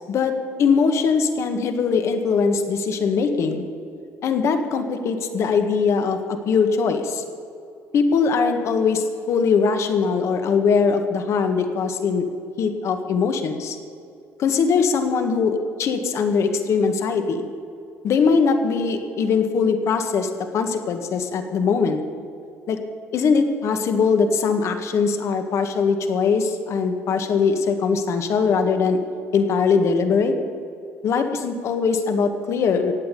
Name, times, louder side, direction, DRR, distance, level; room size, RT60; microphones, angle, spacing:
voice 1, 0.1-3.7 4.2-7.2 7.9-12.3 12.6-13.8 14.4-17.5 18.0-22.0 22.7-22.8 23.1-29.0 29.3-30.3 31.0-32.9, left 5 dB, 60° left, 7 dB, 1.7 m, -21 dB
16.0 x 9.0 x 8.5 m, 2.5 s
cardioid pair, 90°, 6 cm